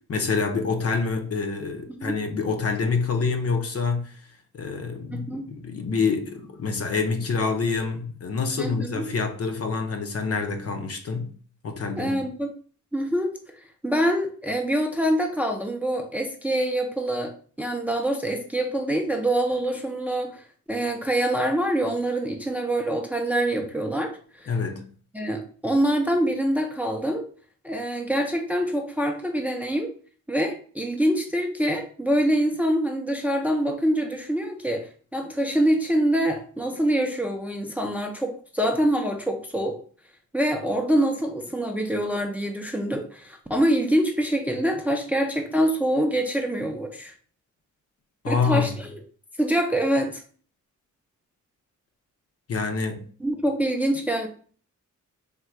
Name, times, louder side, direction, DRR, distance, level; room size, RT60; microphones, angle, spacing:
voice 1, 0.1-4.2 4.5-11.3 11.6-12.2 24.5-24.8 48.2-48.7 52.5-53.0, left 4 dB, 50° left, 0.6 m, -26 dB
voice 2, 5.1-5.5 8.6-9.1 12.0-12.5 12.9-24.1 24.4-24.5 25.1-27.3 27.6-29.9 30.3-39.8 40.3-47.1 48.3-49.0 49.4-50.2 53.2-54.3, right 1 dB, 5° right, 0.4 m, -25 dB
3.6 x 2.2 x 4.4 m
wide cardioid pair, 145°, 31 cm